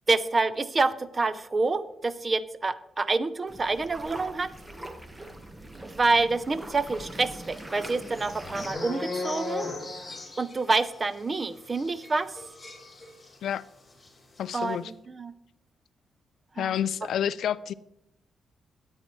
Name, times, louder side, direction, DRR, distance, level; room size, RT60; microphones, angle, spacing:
voice 1, 0.1-4.5 5.8-9.7 10.4-12.3 14.5-14.8 15.2-15.3 16.6-16.7, right 3 dB, 35° right, 14 dB, 0.6 m, -27 dB
sound 1, 3.5-8.7, right 1 dB, 15° right, 1.3 m, -42 dB
sound 2, 6.9-13.6 13.9-14.1 14.4-14.6, left 3 dB, 25° left, 3.4 m, -39 dB
voice 2, 14.4-14.9 16.6-17.7, left 9 dB, 80° left, 17 dB, 0.4 m, -29 dB
13.5 x 9.6 x 3.1 m, 0.84 s
cardioid pair, 90°, 0 cm